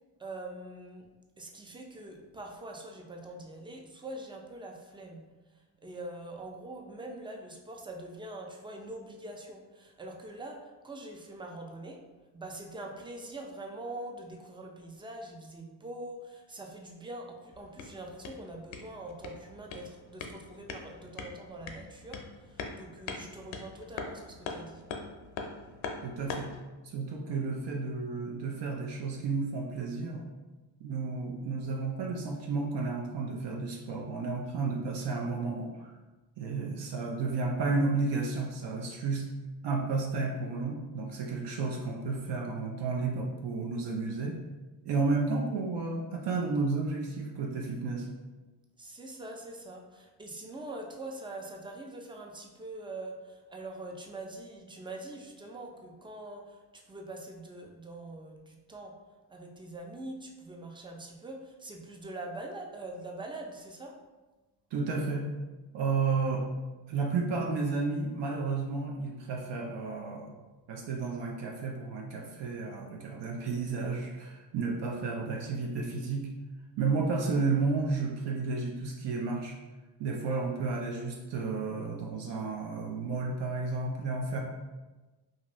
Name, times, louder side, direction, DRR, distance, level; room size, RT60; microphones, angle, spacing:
voice 1, 0.2-1.1 1.4-12.1 12.3-24.8 48.8-59.0 59.3-64.0, right 2 dB, 10° right, 2 dB, 0.4 m, -44 dB
sound 1, 17.5-26.6, left 4 dB, 75° left, 0.6 m, -42 dB
voice 2, 26.0-26.5 26.8-30.3 30.8-35.9 36.4-39.3 39.6-44.4 44.8-48.1 64.7-65.3 65.7-66.5 66.9-70.3 70.7-76.3 76.8-79.6 80.0-84.4, right 4 dB, 60° right, 0 dB, 0.6 m, -32 dB
2.6 x 2.5 x 3.0 m, 1.2 s
supercardioid pair, 65°, 48 cm